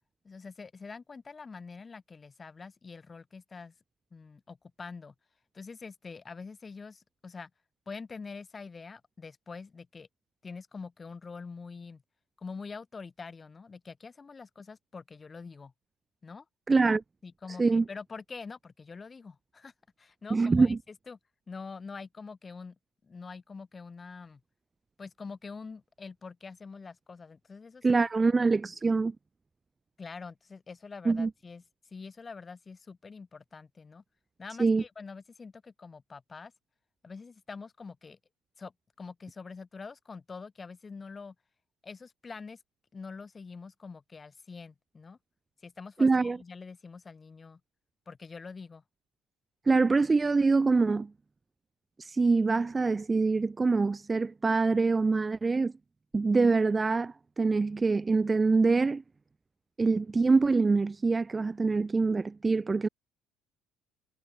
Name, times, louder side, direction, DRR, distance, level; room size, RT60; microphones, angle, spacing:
voice 1, 0.2-3.7 4.1-5.1 5.5-7.5 7.9-10.1 10.4-12.0 12.4-15.7 16.2-16.4 16.9-19.7 20.0-21.2 21.5-22.8 23.0-24.4 25.0-28.5 30.0-31.6 31.9-34.0 34.4-36.5 37.0-38.2 38.6-38.7 39.0-41.3 41.8-42.6 42.9-45.2 45.6-47.6 48.1-48.8, left 4 dB, 25° left, 4.3 m, -45 dB
voice 2, 16.7-17.0 17.6-17.8 20.3-20.8 27.8-29.1 31.1-31.3 34.6-34.8 46.0-46.4 49.7-51.1 52.0-55.7 56.1-59.0 59.8-62.9, right 4 dB, 20° right, 0.3 m, -25 dB
supercardioid pair, 80°, 0 cm